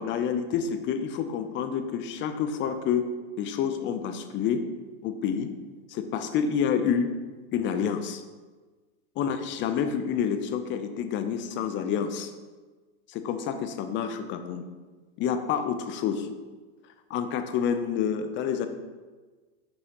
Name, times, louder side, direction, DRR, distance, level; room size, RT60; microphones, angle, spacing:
voice 1, 0.0-3.1 3.4-4.6 5.0-5.5 5.9-7.1 7.5-8.2 9.2-12.3 13.1-14.6 15.2-16.3 17.1-18.7, left 7 dB, 35° left, 8 dB, 0.6 m, -28 dB
6.6 x 5.5 x 2.9 m, 1.3 s
hypercardioid pair, 110°, 32 cm